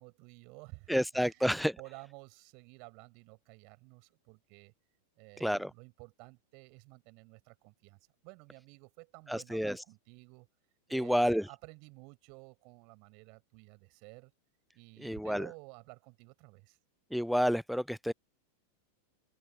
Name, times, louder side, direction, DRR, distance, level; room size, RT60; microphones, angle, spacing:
voice 1, 0.0-1.0 1.3-4.7 5.2-10.5 10.9-14.3 14.7-16.8, right 34 dB, 45° right, 6.7 m, -53 dB
voice 2, 0.9-1.8 5.4-5.7 9.3-9.8 10.9-11.5 15.0-15.5 17.1-18.1, equal, ahead, 0.3 m, -30 dB
open air
figure-of-eight pair, 90°, 0 cm